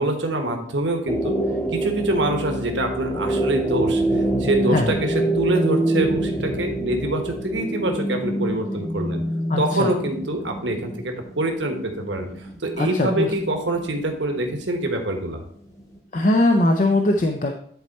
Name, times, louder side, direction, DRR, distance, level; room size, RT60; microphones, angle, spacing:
voice 1, 0.0-1.4 1.7-4.0 4.4-9.2 9.6-12.3 12.6-15.4, right 1 dB, 75° right, 4 dB, 1.3 m, -25 dB
sound 1, 1.1-14.8 15.1-15.2, right 1 dB, 15° left, 1.1 m, -26 dB
voice 2, 9.5-9.9 12.8-13.3 16.1-17.5, left 2 dB, 40° left, 4 dB, 0.5 m, -20 dB
10.5 x 4.2 x 4.2 m, 0.62 s
head